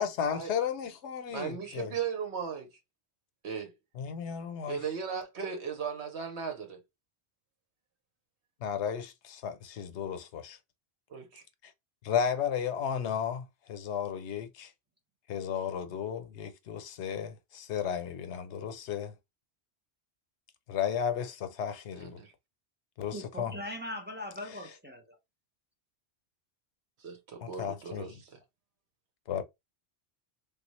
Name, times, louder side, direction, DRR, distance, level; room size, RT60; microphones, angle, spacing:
voice 1, 0.0-1.9 4.0-4.8 8.6-10.6 12.0-14.7 15.3-19.1 20.7-22.2 23.0-23.6 24.5-24.6 27.4-28.1 29.3-29.4, left 8 dB, 90° left, 0.9 m, -34 dB
voice 2, 1.3-2.7 3.4-3.7 4.7-6.8 11.1-11.4 21.9-22.3 27.0-28.4, right 6 dB, 80° right, 1.2 m, -37 dB
voice 3, 23.1-25.2, left 1 dB, 10° right, 0.7 m, -40 dB
3.4 x 2.3 x 3.0 m
omnidirectional pair, 1.1 m